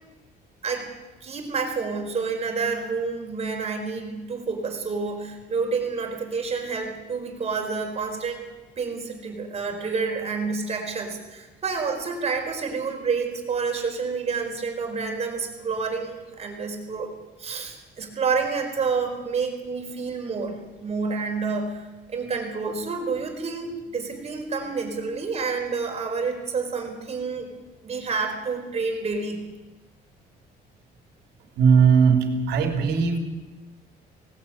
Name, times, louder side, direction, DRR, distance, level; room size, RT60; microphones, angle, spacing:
voice 1, 1.2-8.4 8.8-17.1 17.4-21.8 22.1-27.5 27.8-29.4, right 4 dB, 40° right, 3 dB, 4.5 m, -29 dB
voice 2, 31.5-33.2, right 6 dB, 80° right, 5 dB, 3.4 m, -18 dB
18.5 x 17.5 x 8.6 m, 1.2 s
cardioid pair, 110°, 17 cm